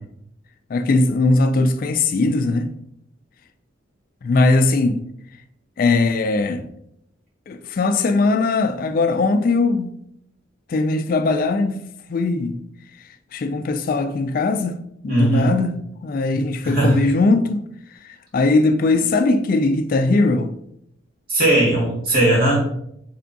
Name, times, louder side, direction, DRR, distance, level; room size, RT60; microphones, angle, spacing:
voice 1, 0.7-2.7 4.2-5.0 5.8-6.6 7.5-9.9 10.7-11.8 12.1-12.6 13.3-14.8 15.0-15.7 16.0-17.7 18.0-20.5, left 3 dB, 45° left, 0.3 m, -19 dB
voice 2, 15.1-15.5 16.3-17.0 21.3-22.6, right 1 dB, 50° right, 1.7 m, -18 dB
3.5 x 3.4 x 3.9 m
head